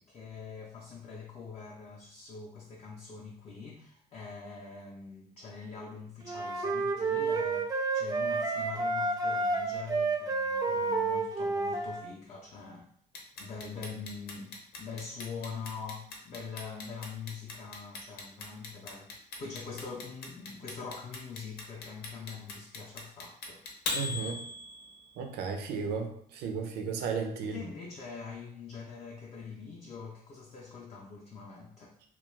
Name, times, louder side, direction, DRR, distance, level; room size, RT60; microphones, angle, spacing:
voice 1, 0.1-12.9 13.4-23.6 27.4-31.9, left 5 dB, 35° left, -3 dB, 0.5 m, -44 dB
sound 1, 6.3-12.1, right 3 dB, 20° right, 0.4 m, -30 dB
Clock, 13.1-25.1, left 3 dB, 70° left, 0.7 m, -39 dB
voice 2, 23.9-24.4 25.2-27.6, right 5 dB, 80° right, 5 dB, 0.5 m, -34 dB
2.3 x 2.2 x 3.1 m, 0.64 s
cardioid pair, 110°, 17 cm